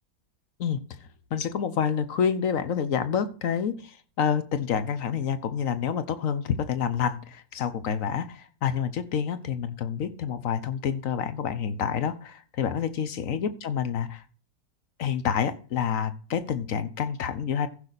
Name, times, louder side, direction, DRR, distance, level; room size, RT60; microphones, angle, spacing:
voice 1, 1.3-14.2 15.0-17.7, left 7 dB, 55° left, 12 dB, 1.1 m, -28 dB
15.0 x 6.4 x 4.1 m, 0.41 s
omnidirectional pair, 2.1 m